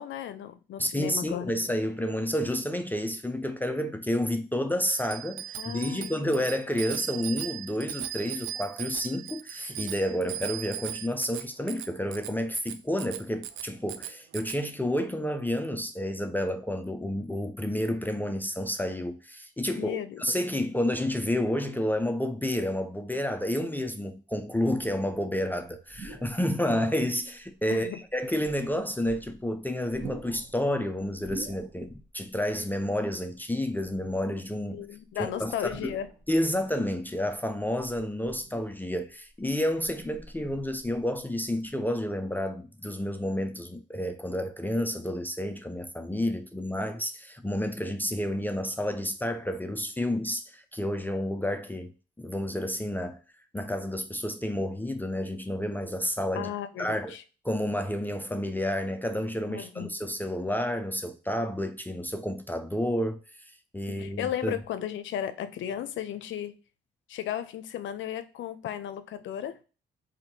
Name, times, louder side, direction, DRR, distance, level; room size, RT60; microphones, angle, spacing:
voice 1, 0.0-1.6 5.6-6.3 19.8-20.2 27.7-28.0 34.7-36.1 56.4-57.2 59.5-59.9 63.9-66.5 67.1-69.6, left 10 dB, 75° left, 0.6 m, -35 dB
voice 2, 0.8-34.8 35.2-36.0 36.3-51.9 52.2-53.2 53.5-56.5 56.8-57.1 57.4-63.2 63.7-64.6, left 1 dB, 10° left, 0.5 m, -30 dB
Bicycle bell, 4.9-14.6, right 11 dB, 90° right, 0.4 m, -38 dB
sound 1, 24.5-25.2 25.8-26.6 27.2-27.3 28.3-29.5 29.8-32.1 32.4-32.5 33.8-34.6 35.6-36.5 37.6-39.0 39.4-41.2 41.5-41.7, right 2 dB, 20° right, 1.3 m, -46 dB
4.3 x 2.7 x 2.7 m
cardioid pair, 90°, 20 cm